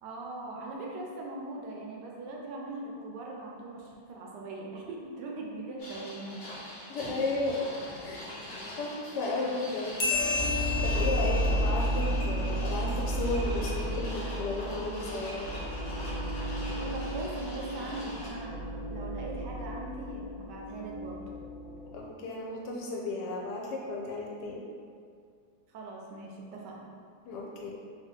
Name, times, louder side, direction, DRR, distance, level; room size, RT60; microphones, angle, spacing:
voice 1, 0.0-6.5 10.9-11.6 16.7-21.2 25.7-26.8, right 2 dB, 75° right, -2 dB, 1.1 m, -41 dB
sound 1, 5.8-18.3, left 1 dB, 90° left, 0.4 m, -42 dB
voice 2, 6.9-7.6 8.0-8.3 8.8-9.9 10.8-15.5 21.9-24.6 27.3-27.7, left 2 dB, 75° left, -2 dB, 1.1 m, -34 dB
sound 2, 10.0-13.0, left 4 dB, 60° left, 0.7 m, -33 dB
sound 3, 10.1-22.0, equal, 25° left, 1.0 m, -33 dB
3.3 x 2.8 x 3.6 m, 2.2 s
omnidirectional pair, 1.9 m